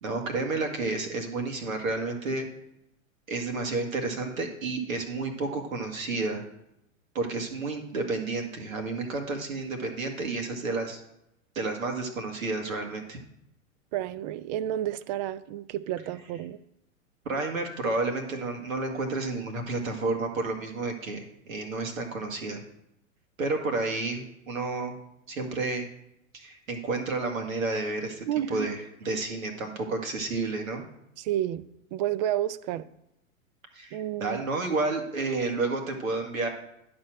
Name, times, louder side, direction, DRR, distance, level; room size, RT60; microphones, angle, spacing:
voice 1, 0.0-2.5 3.3-6.4 7.1-11.0 11.6-13.2 17.3-22.6 23.4-24.9 25.3-25.8 26.3-30.8 33.7-36.5, right 3 dB, 75° right, 3 dB, 2.0 m, -31 dB
voice 2, 13.9-16.6 28.3-28.7 31.2-31.6 31.9-32.9 33.9-34.4, right 12 dB, 35° right, 17 dB, 0.4 m, -30 dB
11.0 x 4.4 x 6.3 m, 0.83 s
figure-of-eight pair, 100°, 41 cm